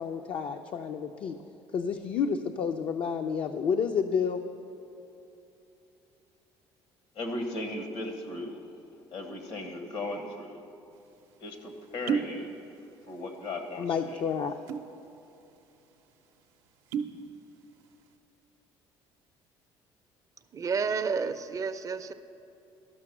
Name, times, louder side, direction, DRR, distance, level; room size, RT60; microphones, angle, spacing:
voice 1, 0.0-1.4 1.7-4.4 13.8-14.5, left 6 dB, 55° left, 5 dB, 0.5 m, -30 dB
voice 2, 7.1-8.6 9.1-10.6 11.4-12.5 13.1-14.2, left 2 dB, 75° left, 5 dB, 1.3 m, -37 dB
sound 1, 11.0-11.1 11.9-12.4 12.7-13.3 13.6-13.8 14.5-15.0 15.4-15.5 15.8-16.0 16.7-17.2 17.6-18.0, right 7 dB, 85° right, 0.6 m, -32 dB
voice 3, 20.5-22.1, right 5 dB, 35° right, 11 dB, 0.4 m, -30 dB
12.0 x 5.9 x 6.0 m, 2.9 s
supercardioid pair, 85°, 10 cm